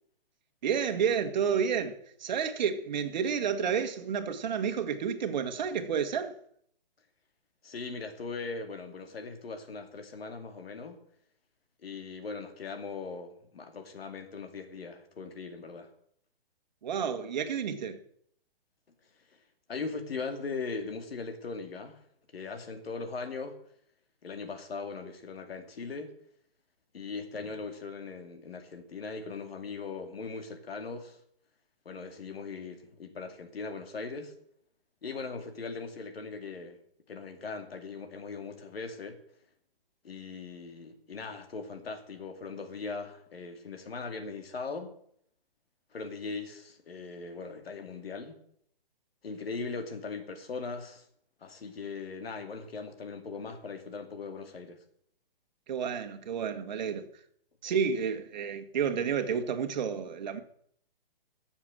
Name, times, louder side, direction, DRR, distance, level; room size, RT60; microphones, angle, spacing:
voice 1, 0.6-6.3 16.8-18.0 55.7-57.0 57.6-60.4, right 7 dB, 50° right, 1.7 m, -30 dB
voice 2, 7.6-11.0 11.8-15.9 19.7-22.0 22.3-23.6 24.2-26.1 26.9-31.2 31.8-34.3 35.0-36.8 37.1-39.2 40.0-44.9 45.9-48.4 49.2-51.1 51.4-54.8, left 4 dB, 90° left, 2.5 m, -39 dB
15.5 x 7.1 x 7.7 m
hypercardioid pair, 165°, 29 cm